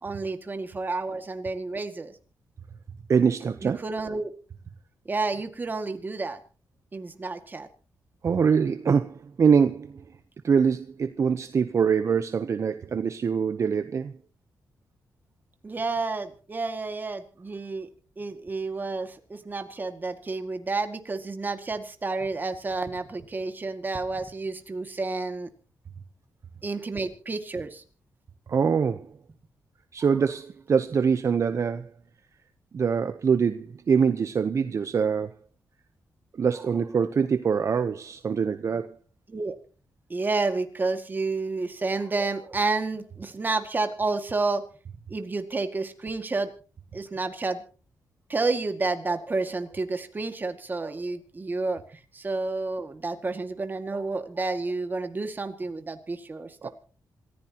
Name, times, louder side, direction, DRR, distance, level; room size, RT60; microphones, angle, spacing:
voice 1, 0.0-2.2 3.6-4.3 5.1-6.4 6.9-7.7 15.6-17.9 18.2-25.5 26.6-27.8 39.3-39.6 40.1-44.6 45.1-46.5 46.9-47.6 48.3-56.7, right 3 dB, 30° right, 2.1 m, -30 dB
voice 2, 3.1-3.8 8.2-10.0 10.4-14.1 28.5-29.1 29.9-31.9 32.7-35.4 36.3-39.0 56.6-56.7, right 6 dB, 50° right, 0.8 m, -24 dB
27.0 x 15.0 x 3.0 m
cardioid pair, 105°, 7 cm